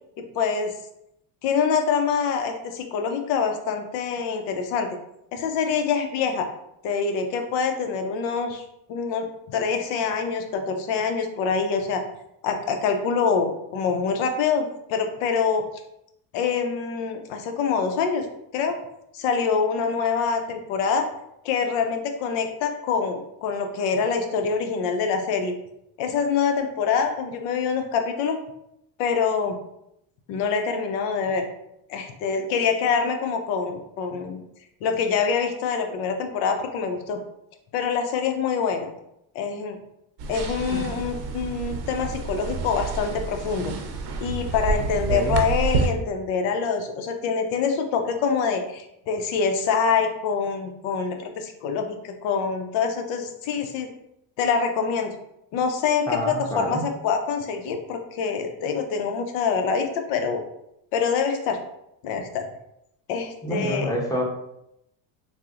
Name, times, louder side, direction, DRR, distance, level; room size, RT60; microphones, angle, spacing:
voice 1, 0.3-0.7 1.4-5.0 5.3-6.5 6.8-8.6 8.9-12.0 12.4-15.7 16.3-18.3 18.5-18.8 19.1-21.1 21.4-25.5 26.0-28.4 29.0-29.6 30.3-31.4 31.9-34.4 34.8-37.2 37.7-38.9 39.3-39.8 40.3-43.7 44.2-53.9 54.4-55.1 55.5-60.4 60.9-61.6 62.0-62.5 63.1-64.0, left 5 dB, 80° left, 6 dB, 0.6 m, -25 dB
sound 1, 40.2-45.9, right 4 dB, 60° right, 0.6 m, -29 dB
voice 2, 56.1-56.8 63.4-64.2, equal, 10° left, -2 dB, 0.8 m, -27 dB
3.9 x 2.1 x 2.4 m, 0.80 s
supercardioid pair, 100°, 44 cm